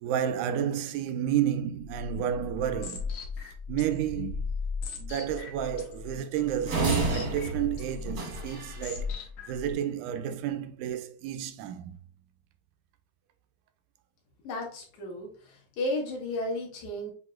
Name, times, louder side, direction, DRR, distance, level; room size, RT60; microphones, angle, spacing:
voice 1, 0.0-3.1 3.7-4.5 5.0-9.1 9.5-12.0, right 10 dB, 80° right, 2.0 m, -31 dB
sound 1, 1.8-9.7, left 5 dB, 90° left, 2.6 m, -37 dB
sound 2, 6.7-8.9, right 3 dB, 50° right, 1.1 m, -31 dB
voice 2, 14.4-17.1, left 1 dB, 65° left, 2.5 m, -33 dB
7.8 x 2.8 x 2.4 m
omnidirectional pair, 3.6 m